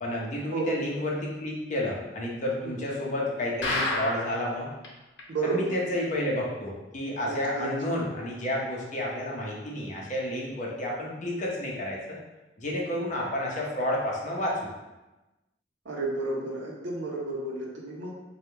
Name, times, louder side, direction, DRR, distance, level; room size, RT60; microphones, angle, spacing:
voice 1, 0.0-4.7 5.4-12.2 12.6-14.7, left 1 dB, 40° left, -3 dB, 0.8 m, -30 dB
sound 1, 3.6-4.5 4.8-4.9 5.2-5.3 5.8-5.9, left 2 dB, 75° left, 0.7 m, -29 dB
voice 2, 5.3-5.7 7.2-8.0 15.8-18.1, right 2 dB, 80° right, -4 dB, 0.8 m, -32 dB
3.5 x 2.3 x 4.4 m, 1.1 s
head